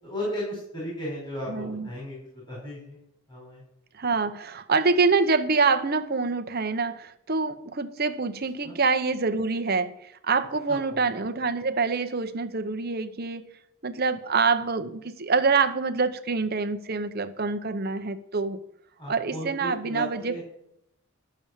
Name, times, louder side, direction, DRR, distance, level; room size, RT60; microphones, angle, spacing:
voice 1, 0.0-3.0 3.3-3.6 8.6-8.7 10.7-11.0 19.0-20.4, equal, 20° left, 4.6 m, -35 dB
voice 2, 1.5-1.9 4.0-13.4 13.8-18.6 19.1-20.4, right 4 dB, 45° right, 0.8 m, -26 dB
12.0 x 7.0 x 7.3 m
head